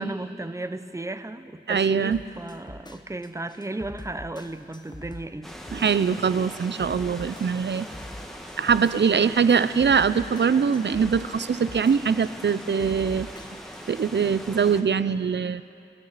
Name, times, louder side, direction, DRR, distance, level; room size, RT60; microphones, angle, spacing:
voice 1, 0.0-5.5, right 2 dB, 15° right, 11 dB, 0.6 m, -34 dB
voice 2, 1.7-2.2 5.7-7.9 8.6-13.3 13.9-15.6, right 6 dB, 60° right, 15 dB, 0.4 m, -22 dB
sound 1, 2.1-14.1, left 1 dB, 20° left, 0.9 m, -44 dB
sound 2, 5.4-14.8, equal, ahead, 1.4 m, -41 dB
21.5 x 13.5 x 4.1 m, 2.5 s
wide cardioid pair, 50°, 20 cm